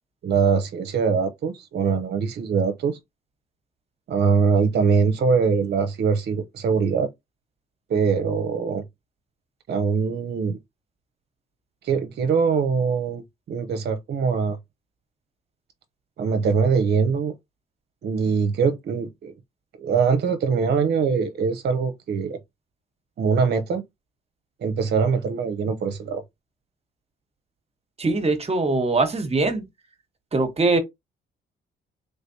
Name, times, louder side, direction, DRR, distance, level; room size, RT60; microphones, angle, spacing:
voice 1, 0.2-3.0 4.1-7.1 7.9-8.8 9.7-10.6 11.8-13.2 13.5-14.6 16.2-17.3 18.0-19.3 19.8-22.4 23.2-23.8 24.6-26.2, right 5 dB, 55° right, 0.7 m, -22 dB
voice 2, 28.0-29.6 30.3-30.8, right 3 dB, 30° right, 1.1 m, -22 dB
3.4 x 3.2 x 2.7 m
cardioid pair, 90°, 20 cm